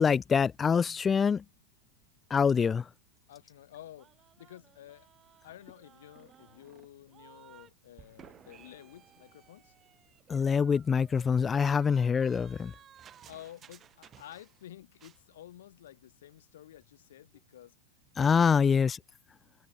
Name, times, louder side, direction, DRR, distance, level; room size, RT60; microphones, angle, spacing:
voice 1, 0.0-1.4 2.3-2.9 10.3-12.7 18.2-19.0, left 6 dB, 20° left, 0.8 m, -25 dB
voice 2, 3.3-4.1 4.4-5.1 5.4-9.7 13.3-17.8, left 12 dB, 60° left, 3.5 m, -51 dB
sound 1, 4.0-7.7 8.0-14.7 14.9-15.2, right 9 dB, 25° right, 7.1 m, -57 dB
figure-of-eight pair, 90°, 0 cm